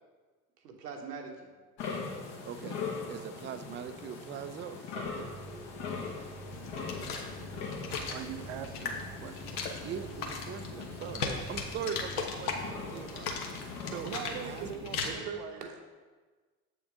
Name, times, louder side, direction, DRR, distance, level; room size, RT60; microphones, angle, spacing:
voice 1, 0.6-1.5 14.6-14.7 15.0-15.8, right 5 dB, 80° right, 3 dB, 1.2 m, -42 dB
sound 1, 1.8-14.7, left 4 dB, 50° left, 1.5 m, -42 dB
voice 2, 2.4-5.4 9.8-13.4 13.9-14.7, right 8 dB, 25° right, 10 dB, 0.5 m, -41 dB
sound 2, 5.0-12.7, right 3 dB, ahead, 1.1 m, -49 dB
sound 3, 6.5-15.1, left 4 dB, 70° left, 1.2 m, -38 dB
voice 3, 8.0-10.0 14.0-15.8, right 9 dB, 60° right, 9 dB, 0.8 m, -43 dB
7.8 x 6.5 x 3.6 m, 1.4 s
figure-of-eight pair, 70°, 47 cm